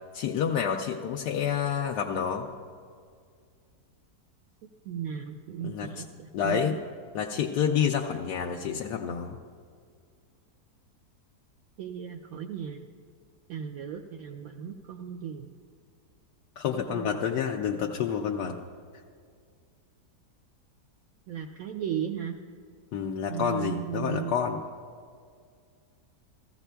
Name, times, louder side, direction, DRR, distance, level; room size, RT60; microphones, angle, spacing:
voice 1, 0.1-2.5 5.6-6.0 6.3-6.8 7.1-9.4 16.6-18.6 22.9-24.6, left 7 dB, 80° left, 1 dB, 1.2 m, -29 dB
voice 2, 4.9-6.8 11.8-12.8 13.5-15.5 16.7-17.1 21.3-22.4 23.3-24.3, right 9 dB, 70° right, 3 dB, 0.9 m, -36 dB
16.0 x 14.5 x 2.2 m, 2.1 s
omnidirectional pair, 1.7 m